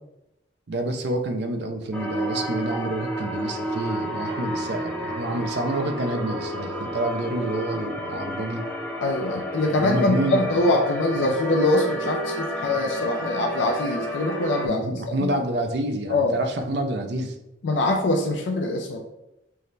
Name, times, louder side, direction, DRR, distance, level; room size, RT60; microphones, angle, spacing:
voice 1, 0.7-8.7 9.7-10.6 14.7-17.3, right 1 dB, 60° right, 6 dB, 0.5 m, -28 dB
sound 1, 1.9-14.7, equal, 5° left, 0.5 m, -31 dB
voice 2, 9.0-15.3 16.1-16.4 17.6-19.0, left 2 dB, 80° left, 2 dB, 0.5 m, -23 dB
6.2 x 2.1 x 3.3 m, 0.91 s
head